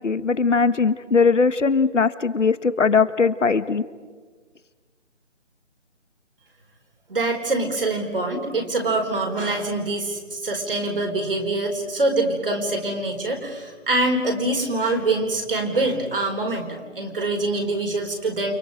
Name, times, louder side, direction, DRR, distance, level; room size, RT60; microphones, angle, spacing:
voice 1, 0.0-3.8, left 5 dB, 75° left, 14 dB, 1.4 m, -20 dB
voice 2, 7.1-18.5, right 2 dB, 45° right, 3 dB, 4.4 m, -24 dB
29.5 x 28.5 x 5.2 m, 1.5 s
figure-of-eight pair, 175°, 37 cm